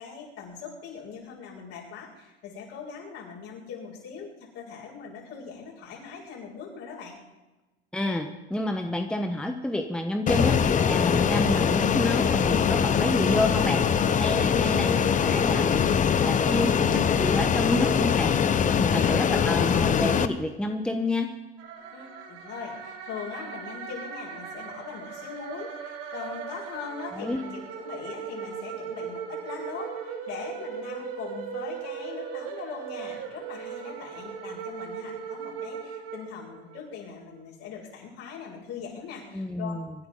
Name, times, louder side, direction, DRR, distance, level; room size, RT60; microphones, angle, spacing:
voice 1, 0.0-7.2 19.0-19.6 21.9-39.7, left 6 dB, 50° left, -3 dB, 6.9 m, -41 dB
voice 2, 7.9-18.4 18.8-21.3 27.1-27.4 39.3-39.9, left 1 dB, 5° left, 5 dB, 1.1 m, -29 dB
Fixed-wing aircraft airplane, 10.3-20.3, left 7 dB, 25° left, 0.9 m, -23 dB
sound 1, 21.6-36.9, right 7 dB, 50° right, 2.5 m, -38 dB
25.0 x 11.0 x 4.1 m, 1.1 s
hypercardioid pair, 95°, 31 cm